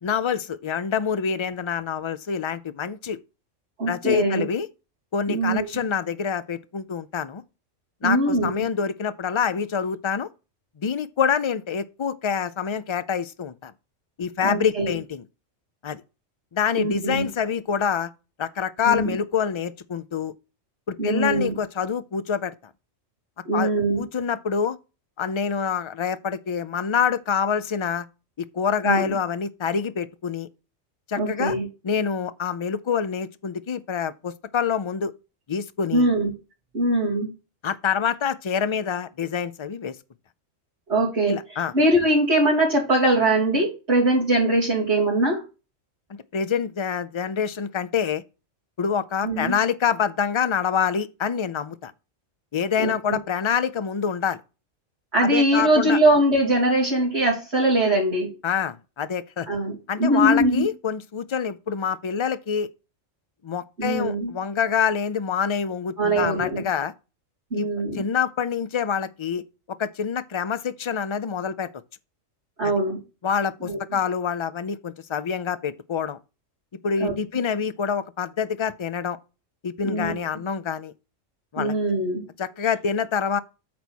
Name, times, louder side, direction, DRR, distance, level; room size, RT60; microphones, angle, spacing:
voice 1, 0.0-3.2 3.9-4.7 5.1-7.4 8.0-10.3 10.8-13.7 14.2-15.2 15.8-16.0 16.5-18.1 18.4-20.3 20.9-22.5 23.5-23.7 24.0-24.8 25.2-28.1 28.5-30.5 31.1-31.5 31.8-35.1 35.5-36.1 37.6-39.9 41.3-41.7 46.3-48.2 48.8-51.9 52.5-54.4 55.2-56.0 58.4-59.5 59.9-62.7 63.4-66.9 67.5-67.7 67.9-69.4 69.8-71.7 72.6-72.7 73.2-76.2 76.8-79.2 79.6-80.9 81.5-81.7 82.4-83.4, left 7 dB, 50° left, 0.3 m, -26 dB
voice 2, 3.8-4.4 5.3-5.6 8.0-8.5 14.4-15.0 16.8-17.3 18.8-19.2 21.0-21.5 23.5-24.0 28.8-29.2 31.2-31.7 35.9-36.3 36.7-37.3 40.9-45.4 49.2-49.6 52.8-53.2 55.1-58.4 59.5-60.7 63.8-64.3 66.0-66.6 67.5-68.0 72.6-73.0 73.6-73.8 77.0-77.1 79.8-80.1 81.6-82.2, right 1 dB, 55° right, 3.5 m, -22 dB
8.7 x 4.2 x 6.2 m
omnidirectional pair, 1.3 m